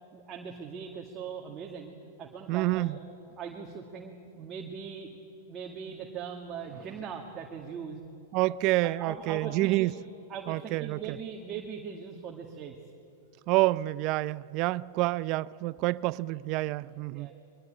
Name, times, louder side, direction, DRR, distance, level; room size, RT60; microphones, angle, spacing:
voice 1, 0.1-3.0 3.4-5.1 5.5-8.0 8.8-9.9 10.3-12.8 17.1-17.3, right 6 dB, 25° right, 1.9 m, -40 dB
voice 2, 2.5-3.0 8.3-9.9 10.5-11.2 13.5-17.3, right 18 dB, 45° right, 0.5 m, -28 dB
22.5 x 22.5 x 8.7 m
hypercardioid pair, 130°, 0 cm